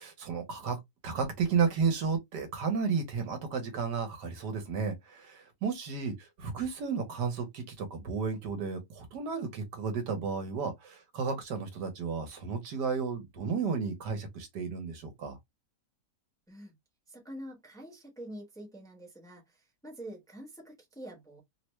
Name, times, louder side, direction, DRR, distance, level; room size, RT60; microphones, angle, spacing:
voice 1, 0.0-15.4, right 5 dB, 75° right, 1.5 m, -33 dB
voice 2, 17.1-19.6 19.8-21.4, right 1 dB, ahead, 0.9 m, -46 dB
3.3 x 2.2 x 3.0 m
omnidirectional pair, 1.8 m